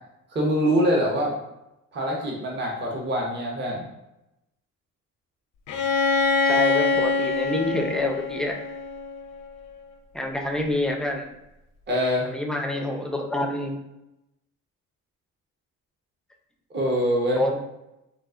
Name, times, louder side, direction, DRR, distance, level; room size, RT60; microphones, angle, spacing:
voice 1, 0.3-1.3 1.9-3.9 11.9-12.3 16.7-17.4, equal, 35° right, -2 dB, 0.8 m, -24 dB
Bowed string instrument, 5.7-9.4, left 4 dB, 80° left, 0.6 m, -24 dB
voice 2, 6.4-8.6 10.1-11.3 12.3-13.7 17.3-17.6, left 1 dB, ahead, 2 dB, 0.4 m, -27 dB
3.9 x 2.4 x 2.4 m, 0.90 s
cardioid pair, 90°, 30 cm